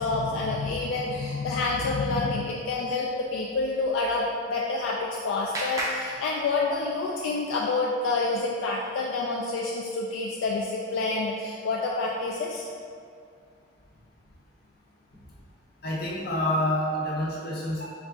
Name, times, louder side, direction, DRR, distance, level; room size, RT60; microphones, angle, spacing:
voice 1, 0.0-12.6, left 3 dB, 70° left, -3 dB, 0.3 m, -28 dB
Clapping, 4.4-7.1, right 1 dB, 15° right, 0.4 m, -36 dB
voice 2, 15.8-17.9, left 1 dB, 50° left, -4 dB, 0.7 m, -27 dB
4.0 x 2.4 x 3.4 m, 2.2 s
head